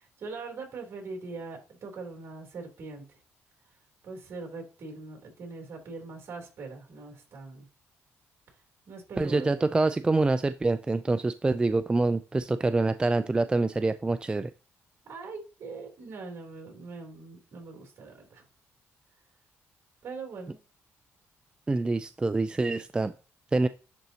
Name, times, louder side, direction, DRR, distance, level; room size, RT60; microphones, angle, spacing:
voice 1, 0.0-3.0 4.0-7.6 8.9-9.8 15.1-18.4 20.0-20.6, right 4 dB, 60° right, 1 dB, 3.2 m, -41 dB
voice 2, 9.2-14.5 21.7-23.1 23.5-23.7, right 3 dB, 20° right, 12 dB, 0.3 m, -26 dB
10.5 x 4.0 x 2.8 m, 0.35 s
cardioid pair, 85°, 5 cm